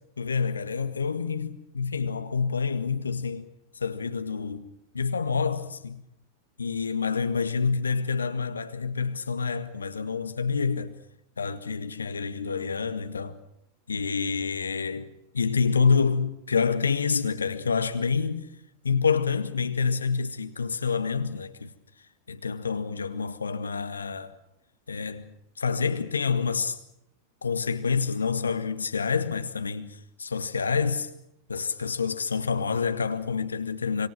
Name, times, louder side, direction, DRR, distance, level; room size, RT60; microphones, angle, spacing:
voice 1, 0.2-3.5 3.8-4.7 4.9-6.0 6.6-10.9 11.4-13.4 13.9-18.5 18.8-21.7 22.3-24.3 24.9-26.8 27.4-31.1 31.5-34.1, left 5 dB, 75° left, 1.7 m, -27 dB
27.0 x 26.0 x 6.2 m
figure-of-eight pair, 90°, 0 cm